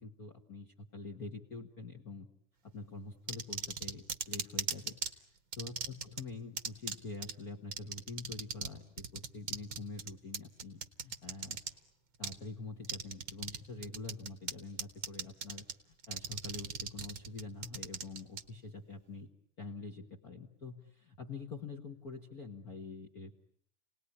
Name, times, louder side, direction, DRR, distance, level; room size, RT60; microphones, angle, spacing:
voice 1, 0.0-2.3 2.6-5.2 5.6-11.6 12.2-19.3 19.6-23.3, left 3 dB, 40° left, 6 dB, 1.4 m, -46 dB
sound 1, 3.3-5.1 5.5-6.2 6.6-7.0 7.2-7.3 7.7-8.7 9.0-11.7 12.2-12.4 12.8-13.6 13.8-14.5 14.8-15.7 16.0-18.4, right 7 dB, 50° right, 1.7 m, -37 dB
29.5 x 19.5 x 9.9 m, 0.70 s
omnidirectional pair, 3.7 m